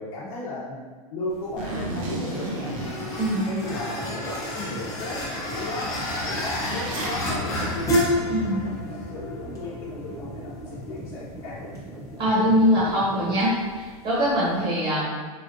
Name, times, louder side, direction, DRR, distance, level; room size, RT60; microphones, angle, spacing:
voice 1, 0.0-3.0 3.4-11.7, left 2 dB, 50° left, -9 dB, 0.9 m, -35 dB
sound 1, 1.3-14.6, equal, 15° left, 0.8 m, -32 dB
Zipper (clothing), 1.6-3.8 4.3-4.4 4.8-5.0 5.2-7.2, right 2 dB, 55° right, 0.9 m, -33 dB
sound 2, 2.8-13.4, equal, 5° right, 0.3 m, -41 dB
voice 2, 3.2-3.5 8.3-8.6 12.2-15.1, equal, 35° right, -8 dB, 1.2 m, -22 dB
4.9 x 2.4 x 2.7 m, 1.4 s
hypercardioid pair, 135°, 19 cm